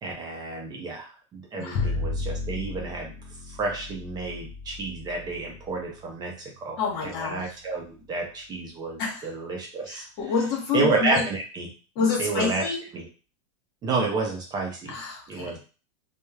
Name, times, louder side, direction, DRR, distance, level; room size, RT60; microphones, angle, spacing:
voice 1, 0.0-3.1 3.5-6.3 6.6-10.0 10.7-11.7 12.2-12.7 12.9-13.1 13.8-15.0 15.3-15.6, right 3 dB, 25° right, 0 dB, 0.5 m, -30 dB
Bowed string instrument, 1.7-7.9, left 3 dB, 40° left, 0.4 m, -34 dB
voice 2, 6.8-7.4 9.0-9.2 9.9-11.2 11.9-12.8 14.9-15.5, left 5 dB, 55° left, 0 dB, 1.1 m, -28 dB
3.0 x 2.1 x 2.3 m, 0.35 s
supercardioid pair, 140°, 17 cm